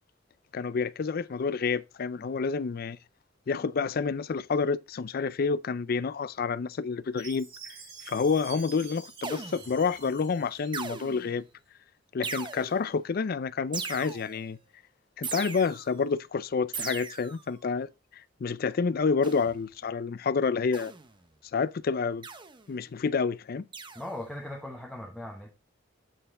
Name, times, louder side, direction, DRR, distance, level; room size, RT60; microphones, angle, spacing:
voice 1, 0.5-3.0 3.5-7.7 8.1-11.4 12.1-14.6 15.2-17.9 18.4-20.9 21.5-22.2 22.7-23.7, left 5 dB, 50° left, 0.4 m, -29 dB
Chime, 7.2-11.3, right 6 dB, 90° right, 3.5 m, -48 dB
sound 1, 9.2-9.8 10.7-11.4 12.2-12.9 13.7-14.5 15.2-16.0 16.7-17.5 19.2-19.6 20.7-21.2 22.2-22.7 23.7-24.2, right 5 dB, 25° right, 0.8 m, -39 dB
voice 2, 23.9-25.5, left 1 dB, ahead, 1.1 m, -39 dB
8.8 x 4.6 x 3.6 m
head